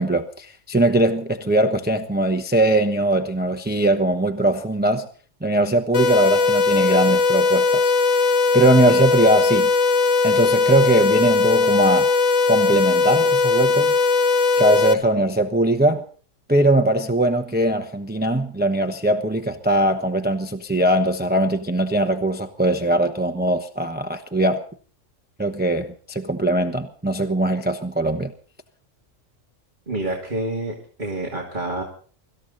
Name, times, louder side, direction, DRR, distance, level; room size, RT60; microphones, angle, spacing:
voice 1, 0.0-5.1 5.4-8.3 8.5-9.7 10.2-12.1 12.5-13.9 14.6-16.0 16.5-24.6 25.4-28.3, right 1 dB, 10° right, 0.8 m, -20 dB
sound 1, 5.9-14.9, left 4 dB, 85° left, 1.4 m, -19 dB
voice 2, 29.9-31.8, right 2 dB, 35° right, 2.7 m, -28 dB
24.5 x 14.0 x 4.1 m
omnidirectional pair, 1.3 m